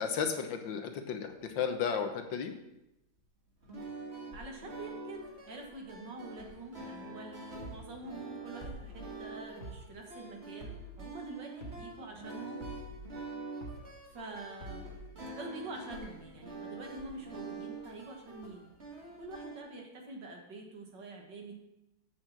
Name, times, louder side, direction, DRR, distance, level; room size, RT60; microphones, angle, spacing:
voice 1, 0.0-2.5, left 6 dB, 75° left, 6 dB, 1.7 m, -33 dB
sound 1, 3.6-19.6, right 2 dB, 35° right, 2.1 m, -46 dB
voice 2, 4.3-12.6 14.1-18.7 19.2-21.5, right 2 dB, 65° right, 2 dB, 2.3 m, -46 dB
sound 2, 7.6-7.8 8.6-9.0 9.6-9.8 10.6-11.0 11.6-11.8 12.6-13.0 13.6-13.8 14.6-15.0, right 1 dB, 40° left, 1.9 m, -45 dB
8.3 x 6.5 x 7.3 m, 0.90 s
omnidirectional pair, 2.1 m